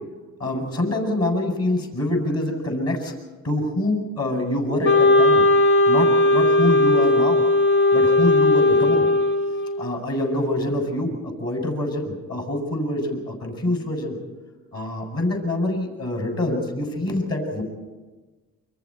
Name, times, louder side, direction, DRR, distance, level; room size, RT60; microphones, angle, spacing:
voice 1, 0.4-3.1 3.4-5.4 5.9-7.4 7.9-9.1 9.8-14.2 14.7-17.6, left 1 dB, 50° left, 2 dB, 8.0 m, -25 dB
Wind instrument woodwind instrument, 4.8-10.0, left 2 dB, 85° left, 2.9 m, -17 dB
29.0 x 24.5 x 4.6 m, 1.2 s
cardioid pair, 90°, 30 cm